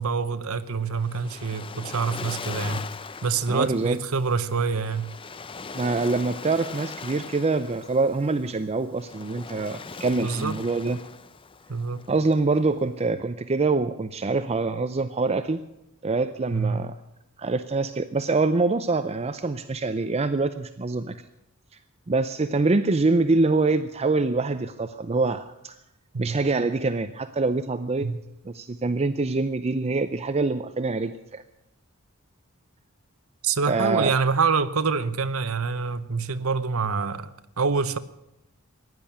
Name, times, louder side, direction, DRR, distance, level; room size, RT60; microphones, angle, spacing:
voice 1, 0.0-2.8 3.2-5.1 10.2-10.6 11.7-12.0 16.5-16.8 26.1-26.4 28.0-28.2 33.4-38.0, right 4 dB, 70° right, 0.9 m, -26 dB
Waves surf, 0.6-13.0, left 4 dB, 25° left, 0.5 m, -40 dB
voice 2, 3.5-4.0 5.7-11.0 12.1-15.6 16.0-16.9 17.4-21.2 22.1-25.8 26.2-28.1 28.4-31.4 33.7-34.1, right 3 dB, 30° right, 0.5 m, -25 dB
15.5 x 10.5 x 8.6 m
head